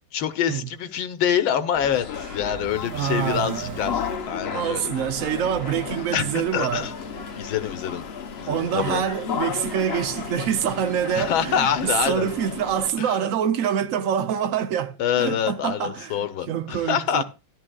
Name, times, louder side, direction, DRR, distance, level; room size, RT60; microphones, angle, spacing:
voice 1, 0.1-4.9 6.1-6.2 6.5-6.9 7.4-8.0 8.4-9.0 11.2-12.3 13.0-13.2 15.0-17.2, left 9 dB, 80° left, 1.6 m, -25 dB
sound 1, 1.7-12.9, left 6 dB, 60° left, 0.6 m, -34 dB
sound 2, 2.1-4.3, right 1 dB, 60° right, 1.4 m, -41 dB
voice 2, 2.9-3.9 4.5-6.9 8.5-17.2, right 9 dB, 85° right, 0.7 m, -26 dB
12.0 x 11.0 x 2.3 m
omnidirectional pair, 2.2 m